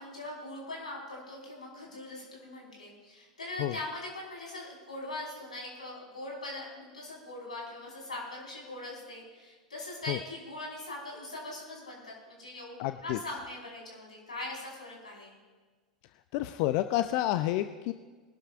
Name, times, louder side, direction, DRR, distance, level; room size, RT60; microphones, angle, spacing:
voice 1, 0.0-12.7 13.0-15.4, left 2 dB, 90° left, -3 dB, 4.9 m, -41 dB
voice 2, 12.8-13.2 16.3-17.9, left 14 dB, 55° left, 10 dB, 0.5 m, -29 dB
22.5 x 12.5 x 2.5 m, 1.4 s
hypercardioid pair, 90°, 4 cm